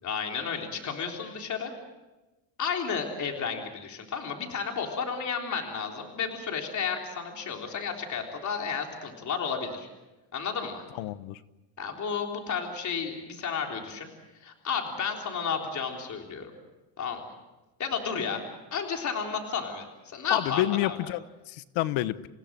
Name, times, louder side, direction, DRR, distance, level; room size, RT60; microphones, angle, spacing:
voice 1, 0.0-1.7 2.6-9.9 10.3-10.8 11.8-14.1 14.4-16.5 17.0-17.2 17.8-18.4 18.7-19.9 20.1-21.0, left 6 dB, 35° left, 2 dB, 3.8 m, -32 dB
voice 2, 11.0-11.4 20.3-22.3, left 15 dB, 75° left, 15 dB, 1.2 m, -29 dB
29.0 x 16.5 x 7.7 m, 1.1 s
cardioid pair, 125°, 48 cm